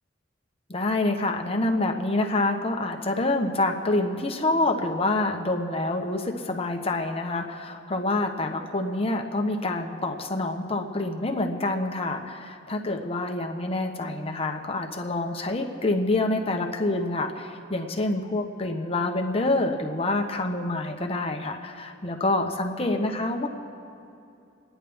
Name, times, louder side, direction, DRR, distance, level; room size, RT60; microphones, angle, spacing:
voice 1, 0.7-23.5, left 2 dB, 30° left, 3 dB, 0.9 m, -27 dB
29.5 x 10.0 x 3.5 m, 2.6 s
head